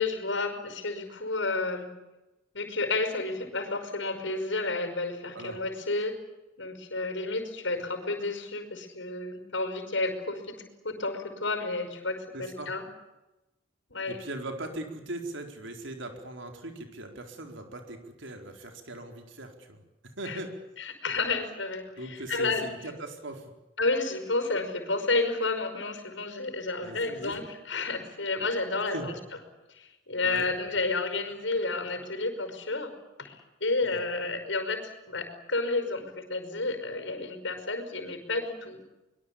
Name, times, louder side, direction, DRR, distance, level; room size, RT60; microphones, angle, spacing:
voice 1, 0.0-1.9 2.5-6.2 6.6-12.8 13.9-14.2 20.3-20.4 20.8-22.6 23.8-29.1 29.7-32.9 33.2-38.8, left 3 dB, 75° left, 7 dB, 5.4 m, -31 dB
voice 2, 12.3-12.7 14.1-19.8 20.2-20.5 22.0-23.5 26.8-27.3 28.9-29.1 30.2-30.5 33.8-34.0, right 1 dB, 75° right, 4 dB, 4.4 m, -39 dB
24.5 x 23.0 x 8.6 m, 1.0 s
head